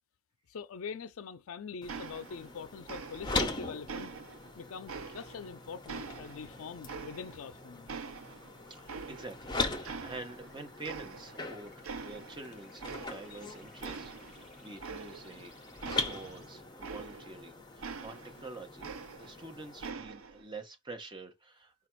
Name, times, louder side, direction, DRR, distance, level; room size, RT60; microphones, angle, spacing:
voice 1, 0.5-4.1 4.6-7.9, left 6 dB, 80° left, 0.4 m, -43 dB
sound 1, 1.8-19.9, left 3 dB, 20° left, 0.6 m, -41 dB
sound 2, 1.9-2.6 2.9-3.5 3.9-5.5 5.9-7.5 7.9-9.5 9.8-10.5 10.8-11.5 11.8-12.4 12.8-13.5 13.8-17.4 17.8-19.5 19.8-20.4, right 5 dB, 75° right, 0.5 m, -44 dB
sound 3, 6.5-16.5, equal, 5° right, 1.9 m, -64 dB
voice 2, 8.7-15.5 15.9-18.9 19.2-21.7, right 2 dB, 20° right, 0.9 m, -47 dB
4.9 x 2.4 x 4.4 m
head